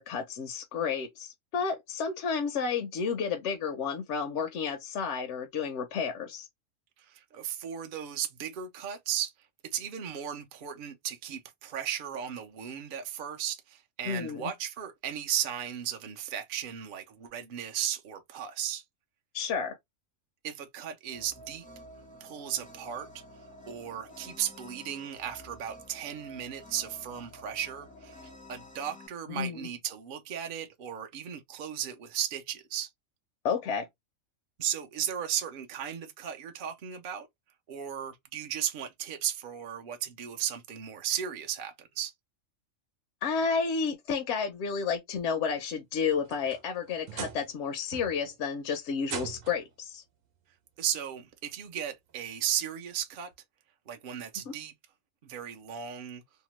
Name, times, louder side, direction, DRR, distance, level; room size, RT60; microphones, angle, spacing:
voice 1, 0.0-6.5 14.0-14.5 19.3-19.8 29.3-29.6 33.4-33.9 43.2-50.0 54.5-54.6, left 6 dB, 70° left, 0.8 m, -31 dB
voice 2, 7.0-9.3 9.7-18.8 20.4-21.7 22.2-23.2 23.7-28.2 28.5-32.9 34.6-37.3 37.7-42.1 50.8-53.3 53.9-54.7 55.2-56.2, right 10 dB, 55° right, 0.6 m, -35 dB
sound 1, 21.1-29.1, left 1 dB, 10° left, 0.5 m, -50 dB
sound 2, 46.0-47.6 47.9-48.4 49.0-49.7 50.9-51.0 51.6-51.7 53.3-53.4, right 7 dB, 80° right, 1.0 m, -41 dB
2.8 x 2.1 x 3.0 m
omnidirectional pair, 1.4 m